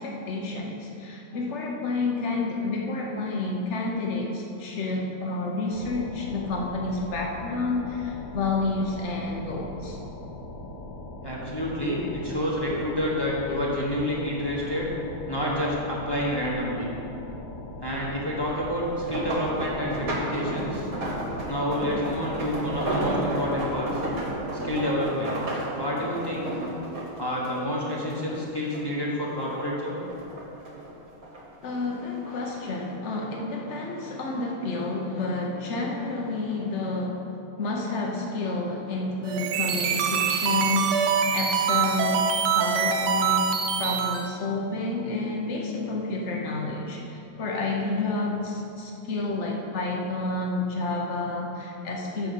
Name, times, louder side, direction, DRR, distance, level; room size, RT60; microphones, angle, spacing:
voice 1, 0.0-10.0 31.6-37.3 37.6-42.2 42.5-43.5 43.8-52.3, left 3 dB, 85° left, -1 dB, 0.6 m, -30 dB
sound 1, 5.7-24.3, left 1 dB, 60° left, 1.3 m, -40 dB
voice 2, 11.2-14.9 15.3-16.9 17.8-20.9 21.5-24.0 24.6-25.4 25.7-26.6 27.2-30.0, left 1 dB, 20° left, -5 dB, 0.7 m, -29 dB
sound 2, 18.8-28.4 28.7-29.7 30.1-31.4 32.2-32.5 32.9-33.0, right 1 dB, 45° right, 1.4 m, -32 dB
sound 3, 39.2-44.3, right 7 dB, 90° right, 1.6 m, -24 dB
6.8 x 5.9 x 6.8 m, 2.8 s
omnidirectional pair, 2.4 m